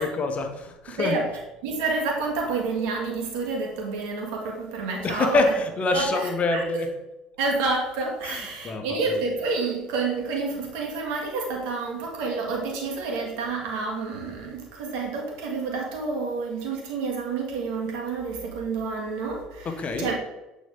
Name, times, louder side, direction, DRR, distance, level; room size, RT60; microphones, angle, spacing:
voice 1, 0.0-1.2 5.0-6.9 8.2-8.8 19.6-20.1, left 3 dB, 40° left, 6 dB, 1.1 m, -26 dB
voice 2, 0.9-5.4 5.9-6.6 7.4-20.2, right 3 dB, 70° right, 0 dB, 1.9 m, -29 dB
8.9 x 4.1 x 3.7 m, 1.0 s
hypercardioid pair, 65°, 4 cm